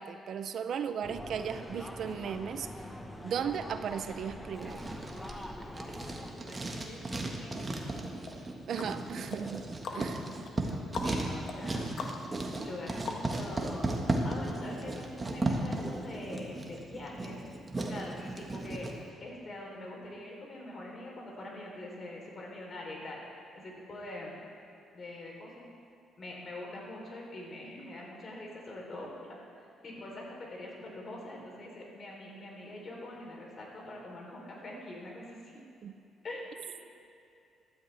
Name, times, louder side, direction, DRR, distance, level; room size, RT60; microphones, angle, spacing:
voice 1, 0.0-2.7 3.2-4.8 8.7-10.2 35.8-35.9, right 7 dB, 65° right, 10 dB, 0.6 m, -36 dB
sound 1, 1.0-6.3, left 1 dB, 10° left, 1.3 m, -43 dB
Writing, 4.6-18.9, right 2 dB, 25° right, 1.5 m, -35 dB
voice 2, 6.3-7.7 9.9-11.9 12.6-13.9 14.2-17.4 17.8-18.9 19.2-23.2 23.5-24.4 24.9-25.7 26.2-29.4 29.8-35.6 36.2-36.5, left 1 dB, 45° left, -2 dB, 3.6 m, -44 dB
sound 2, 8.2-13.6 14.1-14.2, left 4 dB, 65° left, 1.3 m, -42 dB
15.0 x 13.0 x 3.4 m, 2.6 s
cardioid pair, 90°, 0 cm